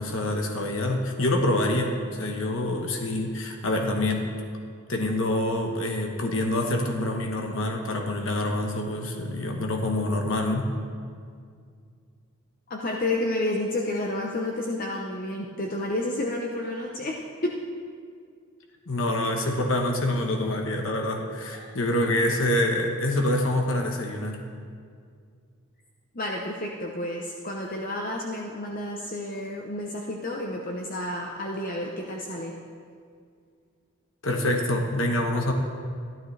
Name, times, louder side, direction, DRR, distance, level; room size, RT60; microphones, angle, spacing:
voice 1, 0.0-4.3 4.9-10.7 18.9-24.4 34.2-35.5, left 1 dB, 65° left, 2 dB, 1.1 m, -26 dB
voice 2, 12.7-17.5 21.5-21.7 26.1-32.5, left 1 dB, 40° left, -1 dB, 0.8 m, -30 dB
14.0 x 12.0 x 3.3 m, 2.2 s
head